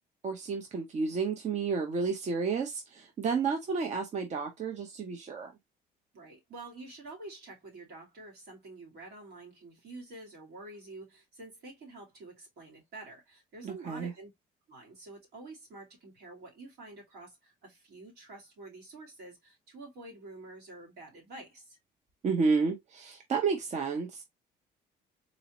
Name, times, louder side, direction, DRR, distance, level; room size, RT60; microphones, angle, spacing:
voice 1, 0.2-5.5 13.6-14.1 22.2-24.2, right 5 dB, 40° right, 0.8 m, -31 dB
voice 2, 6.1-14.3 14.7-21.8, right 2 dB, 75° right, 2.3 m, -48 dB
4.0 x 2.7 x 2.9 m
cardioid pair, 110°, 17 cm